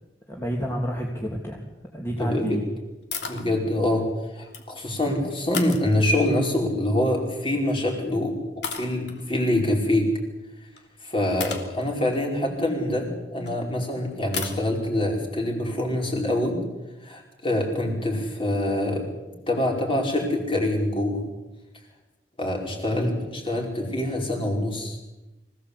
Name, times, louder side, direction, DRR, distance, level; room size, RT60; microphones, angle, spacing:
voice 1, 0.3-1.6 1.9-2.6 22.9-23.1, equal, 15° left, -2 dB, 2.9 m, -29 dB
voice 2, 2.2-2.6 3.3-10.1 11.0-16.6 17.0-19.1 19.5-21.3 22.4-25.0, left 1 dB, 30° left, 0 dB, 5.4 m, -25 dB
sound 1, 3.1-3.5 4.3-4.9 5.5-6.4 7.7-7.9 8.6-9.2 10.8-10.9 11.4-13.5 14.3-14.6, left 6 dB, 70° left, 3.0 m, -34 dB
25.5 x 17.0 x 8.4 m, 1.1 s
head